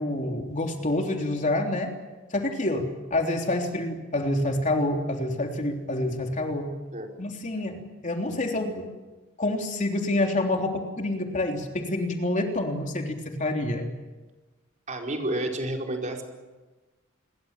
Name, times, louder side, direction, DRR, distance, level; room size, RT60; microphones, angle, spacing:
voice 1, 0.0-1.9 2.3-6.7 7.2-8.8 9.4-13.9, left 1 dB, 35° left, 2 dB, 3.3 m, -27 dB
voice 2, 14.9-16.2, right 1 dB, 35° right, 1 dB, 4.7 m, -30 dB
28.5 x 22.5 x 7.4 m, 1.2 s
head